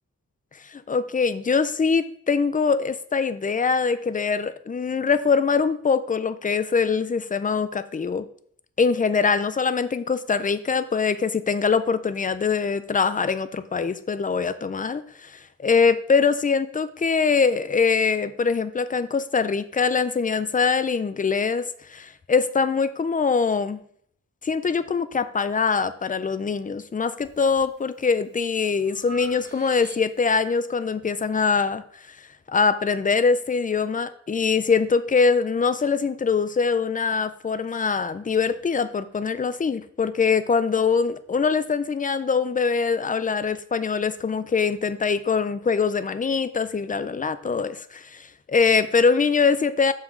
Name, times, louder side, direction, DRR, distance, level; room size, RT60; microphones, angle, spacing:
voice 1, 0.6-8.3 8.8-23.8 24.4-49.9, left 5 dB, 25° left, 12 dB, 0.4 m, -23 dB
Breathing, 27.2-27.7 28.2-30.4, right 4 dB, 35° right, 0.8 m, -46 dB
7.4 x 5.8 x 3.7 m, 0.63 s
wide cardioid pair, 135°, 30 cm